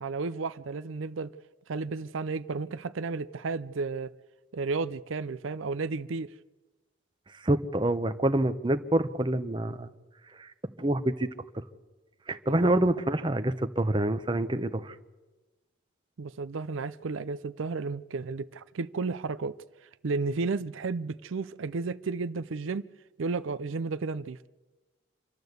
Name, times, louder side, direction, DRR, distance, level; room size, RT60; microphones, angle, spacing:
voice 1, 0.0-1.3 1.7-4.1 4.5-6.3 12.5-12.7 16.2-19.6 20.0-22.8 23.2-24.5, right 4 dB, 75° right, 0.5 m, -33 dB
voice 2, 7.3-9.9 10.4-10.5 10.8-11.3 11.5-11.6 12.3-14.9, right 1 dB, 25° right, 0.7 m, -27 dB
26.5 x 12.5 x 8.0 m
head